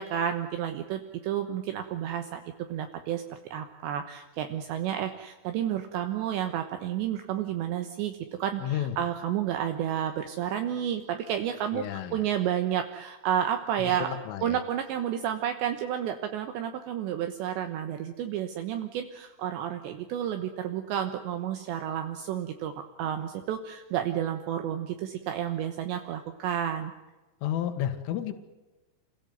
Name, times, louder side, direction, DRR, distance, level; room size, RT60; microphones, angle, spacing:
voice 1, 0.0-2.4 2.7-3.2 3.5-14.1 14.4-22.7 23.0-26.9, right 10 dB, 75° right, 6 dB, 3.2 m, -31 dB
voice 2, 8.6-9.0 11.7-12.3 13.8-14.6 27.4-28.3, left 11 dB, 80° left, 7 dB, 4.2 m, -32 dB
27.5 x 17.5 x 9.4 m, 1.2 s
omnidirectional pair, 5.6 m